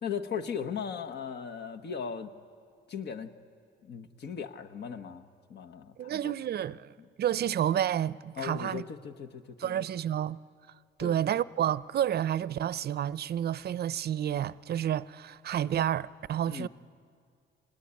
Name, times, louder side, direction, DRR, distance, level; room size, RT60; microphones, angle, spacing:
voice 1, 0.0-2.3 2.9-3.3 3.8-6.3 6.7-6.8 8.4-9.9 11.0-11.2 16.5-16.7, left 7 dB, 60° left, 1.4 m, -38 dB
voice 2, 6.0-6.9 7.2-8.8 9.6-10.4 11.0-16.7, right 10 dB, 55° right, 0.5 m, -30 dB
26.5 x 19.5 x 9.9 m
cardioid pair, 90°, 20 cm